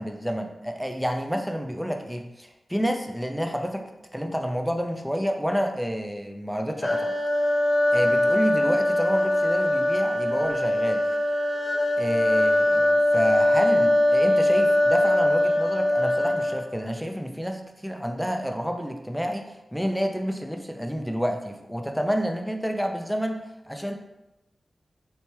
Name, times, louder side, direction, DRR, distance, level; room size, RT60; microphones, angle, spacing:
voice 1, 0.0-3.8 4.1-7.1 7.9-11.0 12.0-23.4 23.7-24.0, equal, ahead, 4 dB, 0.5 m, -29 dB
sound 1, 6.8-16.7, left 1 dB, 50° left, 1.0 m, -22 dB
3.2 x 2.9 x 3.1 m, 0.95 s
cardioid pair, 50°, 0 cm